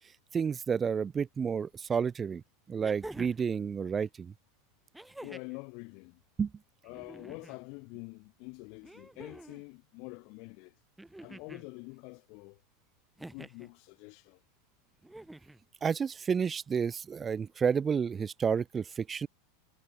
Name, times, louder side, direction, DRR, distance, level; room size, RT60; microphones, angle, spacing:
voice 1, 0.3-2.4 2.7-4.3 6.4-6.5 15.8-19.3, right 6 dB, 25° right, 0.7 m, -30 dB
sound 1, 1.7-1.8 2.8-3.5 4.9-5.6 6.9-7.6 8.8-9.6 11.0-11.7 13.2-13.7 15.0-15.6 16.9-17.0, right 1 dB, 5° right, 5.2 m, -47 dB
voice 2, 5.2-6.2 6.8-10.7 11.2-12.6 13.2-14.4, left 33 dB, 55° left, 7.1 m, -46 dB
hypercardioid pair, 110°, 0 cm